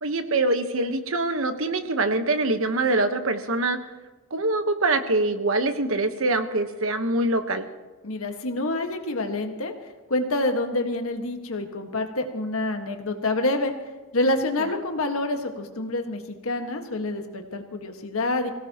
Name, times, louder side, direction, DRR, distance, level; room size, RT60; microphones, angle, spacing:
voice 1, 0.0-3.8 4.3-7.7, right 2 dB, 75° right, 8 dB, 1.2 m, -24 dB
voice 2, 8.0-9.7 10.1-13.7 14.1-18.5, left 2 dB, 85° left, 4 dB, 1.7 m, -27 dB
25.0 x 16.5 x 3.0 m, 1.2 s
head